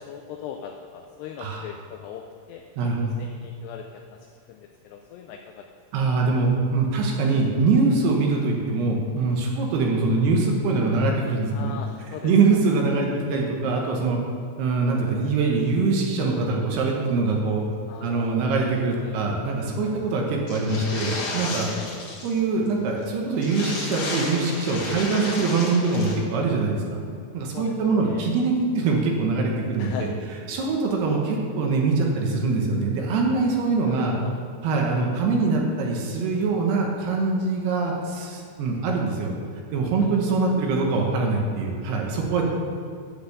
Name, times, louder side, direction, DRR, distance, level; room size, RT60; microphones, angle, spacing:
voice 1, 0.0-2.6 3.0-6.1 9.6-9.7 11.5-12.6 17.9-18.5 19.0-19.2 19.8-20.0 21.8-21.9 27.5-28.3 29.8-30.2 33.8-34.4 34.8-35.0 40.0-40.1, left 8 dB, 85° left, 4 dB, 2.3 m, -40 dB
voice 2, 2.8-3.1 5.9-11.7 12.2-14.2 14.6-17.6 18.0-21.7 22.2-27.0 27.3-30.1 30.5-34.1 34.6-39.3 39.7-42.5, right 3 dB, 70° right, 0 dB, 2.7 m, -23 dB
sound 1, 20.5-22.4 22.7-22.8 23.0-23.1 23.4-26.1, left 3 dB, 60° left, 2.1 m, -32 dB
8.4 x 5.7 x 7.8 m, 2.2 s
omnidirectional pair, 5.3 m